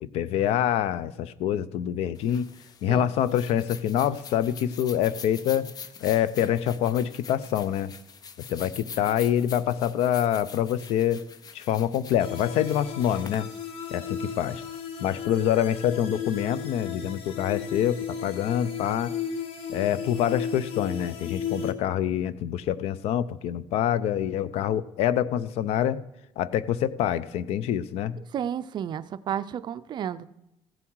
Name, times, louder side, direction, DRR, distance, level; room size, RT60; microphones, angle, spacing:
voice 1, 0.0-2.5 2.8-5.7 6.0-7.9 8.4-11.2 11.5-13.5 13.9-14.6 15.0-19.1 19.7-26.0 26.4-28.2, left 10 dB, 75° left, 17 dB, 0.6 m, -26 dB
sound 1, 2.1-14.6, left 6 dB, 35° left, 0.7 m, -45 dB
sound 2, 12.2-21.7, left 7 dB, 60° left, 1.4 m, -35 dB
voice 2, 28.3-30.3, right 9 dB, 45° right, 14 dB, 0.5 m, -32 dB
15.5 x 7.3 x 4.6 m, 0.90 s
cardioid pair, 135°, 11 cm